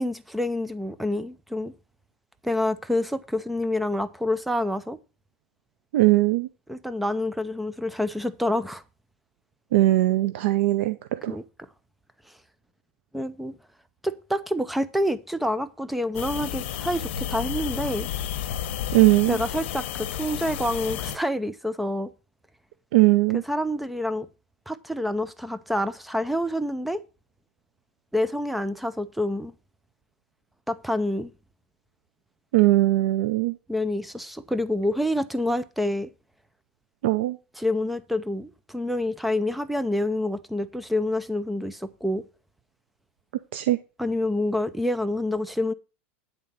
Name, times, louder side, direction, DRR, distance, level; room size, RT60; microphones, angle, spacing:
voice 1, 0.0-1.7 2.4-5.0 6.7-8.8 11.3-11.4 13.1-13.6 14.0-18.1 19.3-22.1 23.3-24.3 24.7-27.0 28.1-29.5 30.7-31.3 33.7-36.1 37.5-42.2 44.0-45.7, left 1 dB, ahead, 0.4 m, -27 dB
voice 2, 5.9-6.5 9.7-11.0 11.2-11.3 18.9-19.4 22.9-23.4 32.5-33.5 37.0-37.4 43.5-43.8, right 17 dB, 75° right, 0.6 m, -19 dB
sound 1, 16.1-21.2, left 10 dB, 70° left, 1.0 m, -31 dB
9.7 x 4.0 x 7.1 m
supercardioid pair, 160°, 6 cm